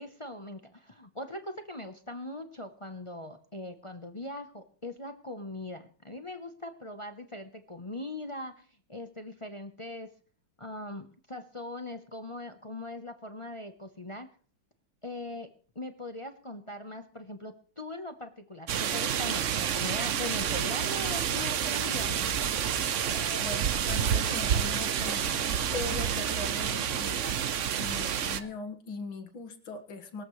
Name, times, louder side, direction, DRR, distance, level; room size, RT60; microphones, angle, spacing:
voice 1, 0.0-10.1 10.6-14.3 15.0-15.5 15.7-22.3, left 2 dB, 35° left, 7 dB, 0.5 m, -40 dB
sound 1, 18.7-28.4, right 9 dB, 60° right, 0.8 m, -29 dB
Scratching (performance technique), 20.4-22.3 22.7-24.3 25.0-25.6, right 2 dB, 30° right, 3.2 m, -45 dB
sound 2, 20.9-28.5, equal, 5° left, 1.1 m, -47 dB
voice 2, 23.4-27.2 27.8-30.2, left 3 dB, 85° left, 6 dB, 2.6 m, -40 dB
23.5 x 13.5 x 3.2 m, 0.43 s
omnidirectional pair, 2.2 m